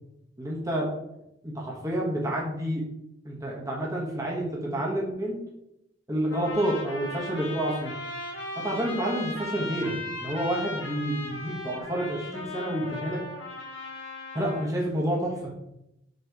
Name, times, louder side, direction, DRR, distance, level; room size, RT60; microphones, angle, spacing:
voice 1, 0.4-0.9 1.4-2.8 3.2-5.4 6.1-7.9 8.6-9.9 10.2-13.2 14.3-15.4, right 1 dB, 15° right, -3 dB, 1.3 m, -29 dB
sound 1, 6.3-14.7, left 2 dB, 65° left, 2.4 m, -37 dB
6.6 x 3.2 x 4.7 m, 0.84 s
head